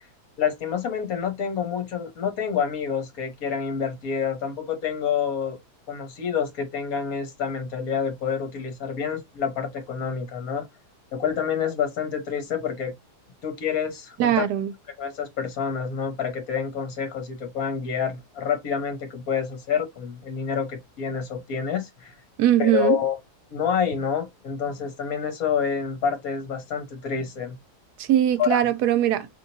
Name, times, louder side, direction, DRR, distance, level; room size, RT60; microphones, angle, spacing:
voice 1, 0.4-5.6 5.9-10.6 11.1-12.9 13.4-14.3 15.0-22.1 22.6-23.1 23.5-27.6 28.4-28.6, left 7 dB, 60° left, 1.5 m, -28 dB
voice 2, 14.2-14.7 22.4-23.0 28.0-29.3, right 11 dB, 75° right, 1.1 m, -21 dB
3.7 x 2.8 x 2.6 m
omnidirectional pair, 1.8 m